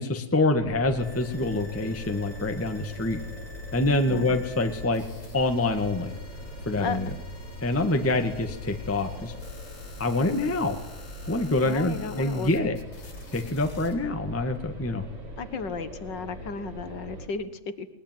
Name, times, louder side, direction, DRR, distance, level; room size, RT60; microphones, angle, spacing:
voice 1, 0.0-3.2 3.7-5.0 5.3-6.1 6.6-7.1 7.6-9.3 10.0-10.8 11.2-12.8 13.3-15.0, left 2 dB, 5° left, 6 dB, 1.4 m, -26 dB
sound 1, 0.6-17.3, left 1 dB, 50° right, 4.7 m, -41 dB
sound 2, 1.0-13.9, left 3 dB, 85° left, 5.8 m, -47 dB
voice 2, 11.6-12.7 15.4-17.9, left 4 dB, 45° left, 12 dB, 1.7 m, -34 dB
21.5 x 21.0 x 9.6 m, 0.92 s
omnidirectional pair, 3.3 m